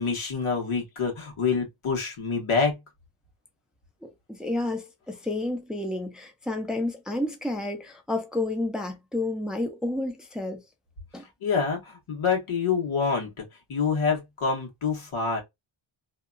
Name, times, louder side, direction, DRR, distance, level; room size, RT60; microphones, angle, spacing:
voice 1, 0.0-2.8 11.4-15.4, left 5 dB, 90° left, 1.3 m, -27 dB
voice 2, 4.0-10.6 11.1-11.2, left 2 dB, ahead, 0.4 m, -30 dB
2.7 x 2.3 x 2.5 m
wide cardioid pair, 130°, 48 cm